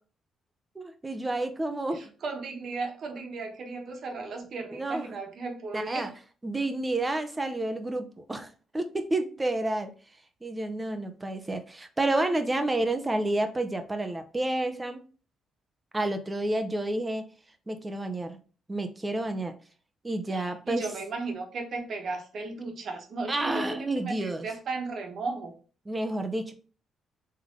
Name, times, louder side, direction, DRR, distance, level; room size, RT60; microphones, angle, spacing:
voice 1, 0.7-2.0 4.7-5.2 5.7-6.1 6.4-9.9 10.4-15.0 15.9-17.3 17.7-18.4 18.7-19.6 20.0-20.9 23.3-24.5 25.9-26.5, right 2 dB, 15° right, 7 dB, 0.7 m, -30 dB
voice 2, 2.2-6.1 20.3-23.8 24.0-25.5, right 3 dB, 55° right, 3 dB, 1.1 m, -35 dB
3.7 x 3.3 x 3.6 m, 0.39 s
cardioid pair, 90°, 0 cm